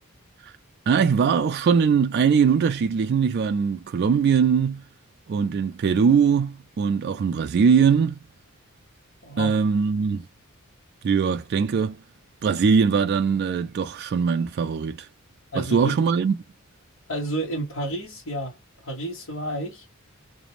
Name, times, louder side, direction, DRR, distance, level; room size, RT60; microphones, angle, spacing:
voice 1, 0.9-4.8 5.3-8.2 9.4-10.2 11.0-12.0 12.4-15.1 15.6-16.4, right 6 dB, 50° right, 0.3 m, -21 dB
voice 2, 9.2-9.5 15.5-15.9 17.1-18.6 18.8-19.8, right 1 dB, 70° left, 1.0 m, -30 dB
2.5 x 2.1 x 2.9 m
head